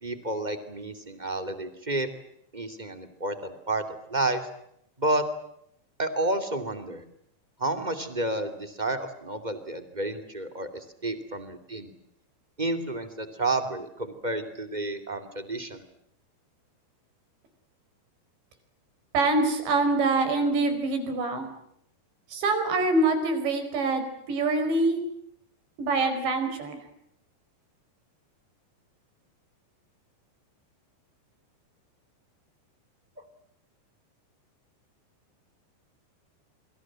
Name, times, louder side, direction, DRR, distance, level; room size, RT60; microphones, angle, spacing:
voice 1, 0.0-2.1 2.5-3.8 4.1-4.4 5.0-5.2 6.0-7.0 7.6-11.9 12.6-15.8, right 2 dB, 15° right, 8 dB, 1.8 m, -30 dB
voice 2, 19.1-21.5 22.3-25.0 25.8-26.8, right 3 dB, 80° right, 7 dB, 7.1 m, -25 dB
27.5 x 25.5 x 7.7 m, 0.73 s
omnidirectional pair, 5.0 m